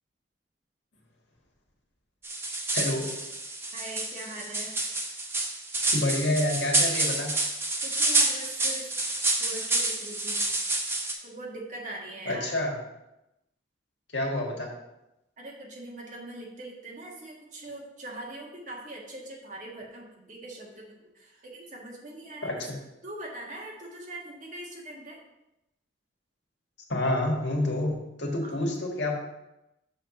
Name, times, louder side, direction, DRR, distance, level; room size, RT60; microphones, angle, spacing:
sound 1, 2.2-11.1, right 2 dB, 15° right, 0.7 m, -28 dB
voice 1, 2.7-3.1 5.9-7.3 12.2-12.7 14.1-14.7 22.4-22.8 26.9-29.1, left 1 dB, 75° left, 0 dB, 1.7 m, -28 dB
voice 2, 3.7-4.7 7.8-8.9 9.4-10.5 11.2-12.6 15.4-22.6 23.0-25.2 28.4-28.5, right 1 dB, 40° right, -3 dB, 1.6 m, -42 dB
6.5 x 4.7 x 6.0 m, 0.91 s
head